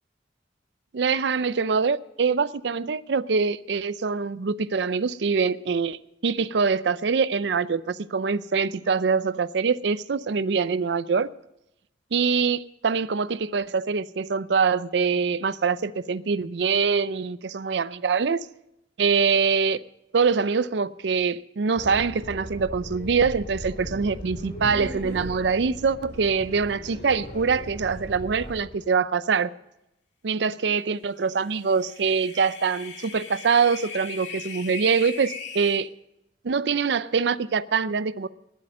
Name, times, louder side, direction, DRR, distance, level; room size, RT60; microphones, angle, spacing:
voice 1, 0.9-11.3 12.1-18.5 19.0-19.8 20.1-29.5 30.2-35.9 36.4-38.3, right 5 dB, 70° right, 0.5 m, -24 dB
sound 1, 21.8-28.6, equal, 45° left, 5.3 m, -38 dB
sound 2, 31.5-35.8, left 6 dB, 75° left, 2.4 m, -39 dB
19.5 x 8.5 x 6.6 m
head